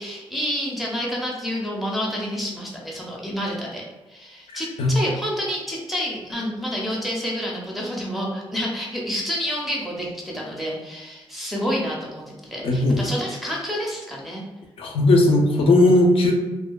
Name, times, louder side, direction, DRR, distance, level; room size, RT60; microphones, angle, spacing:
voice 1, 0.0-14.4, equal, ahead, -4 dB, 0.5 m, -29 dB
voice 2, 12.6-13.0 14.8-16.3, left 2 dB, 70° left, 1 dB, 0.4 m, -17 dB
2.6 x 2.2 x 2.2 m, 1.1 s
wide cardioid pair, 160°, 10 cm